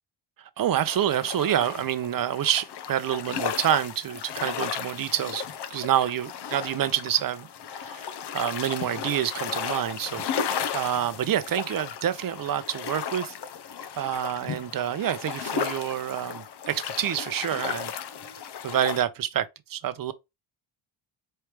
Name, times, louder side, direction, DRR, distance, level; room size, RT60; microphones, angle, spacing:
voice 1, 0.4-5.4 5.7-8.1 8.3-13.3 14.0-17.9 18.6-20.1, right 10 dB, 45° right, 0.6 m, -27 dB
sound 1, 0.9-19.0, left 7 dB, 55° left, 0.7 m, -35 dB
4.6 x 3.3 x 3.3 m
cardioid pair, 125°, 49 cm